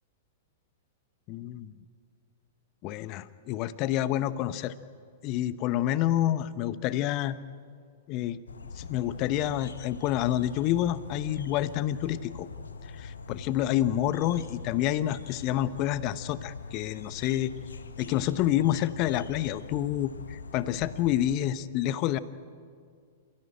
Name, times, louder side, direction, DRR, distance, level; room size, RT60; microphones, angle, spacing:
voice 1, 1.3-1.7 2.8-4.7 5.2-7.4 8.1-8.4 8.8-12.5 13.0-17.5 18.0-22.2, left 12 dB, 35° left, 16 dB, 0.9 m, -28 dB
sound 1, 8.5-21.4, left 4 dB, 70° left, 1.3 m, -43 dB
29.0 x 16.0 x 9.0 m, 2.2 s
figure-of-eight pair, 100°, 0 cm